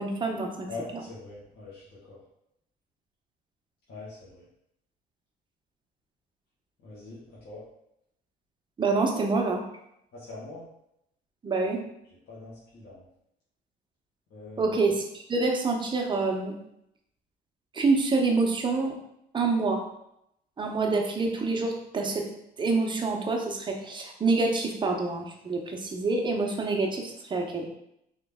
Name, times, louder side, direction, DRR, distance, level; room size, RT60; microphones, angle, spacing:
voice 1, 0.0-0.7 8.8-9.6 11.4-11.8 14.6-16.5 17.7-18.9 19.3-19.8 20.6-22.3 22.6-27.7, right 3 dB, 30° right, 2 dB, 0.8 m, -26 dB
voice 2, 0.7-2.2 3.9-4.4 6.8-7.6 10.1-10.6 12.3-13.0 14.3-14.8, left 3 dB, 70° left, -9 dB, 1.6 m, -43 dB
3.8 x 3.1 x 3.6 m, 0.78 s
cardioid pair, 110°, 17 cm